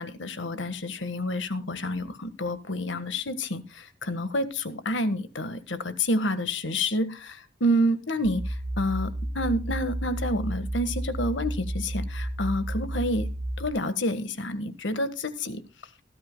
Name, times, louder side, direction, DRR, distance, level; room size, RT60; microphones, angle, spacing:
voice 1, 0.0-8.4 8.8-13.3 13.6-15.6, left 1 dB, 80° left, 12 dB, 1.5 m, -28 dB
sound 1, 8.2-13.7, right 1 dB, 55° right, 1.4 m, -32 dB
19.0 x 12.5 x 2.2 m, 0.29 s
head